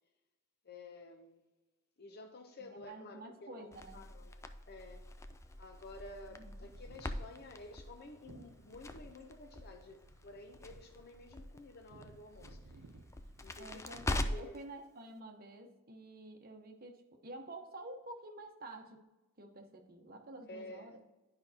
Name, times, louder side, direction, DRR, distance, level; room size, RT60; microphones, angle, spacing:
voice 1, 0.6-1.5 2.0-5.1 5.6-12.9 13.4-14.6 20.5-20.9, left 2 dB, 50° left, 0.6 m, -52 dB
voice 2, 2.7-4.0 6.3-6.7 13.6-19.0 19.4-21.0, right 2 dB, 45° right, 0.9 m, -50 dB
Crackle, 3.7-14.6, left 1 dB, 15° left, 0.3 m, -43 dB
sound 1, 5.2-14.3, right 2 dB, 75° right, 0.7 m, -61 dB
10.0 x 5.2 x 2.8 m
head